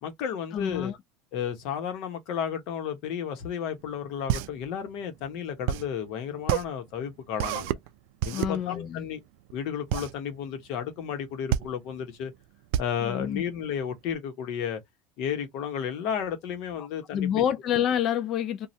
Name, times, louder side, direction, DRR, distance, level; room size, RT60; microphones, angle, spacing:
voice 1, 0.0-0.9 1.3-7.8 8.2-9.2 9.5-12.3 12.8-14.8 15.2-17.3, left 8 dB, 65° left, 1.0 m, -33 dB
voice 2, 0.5-1.0 8.3-9.1 13.0-13.4 16.8-16.9 17.1-18.7, left 10 dB, 45° left, 0.4 m, -28 dB
sound 1, 3.8-14.2, right 12 dB, 75° right, 0.3 m, -31 dB
2.6 x 2.3 x 3.1 m
supercardioid pair, 120°, 0 cm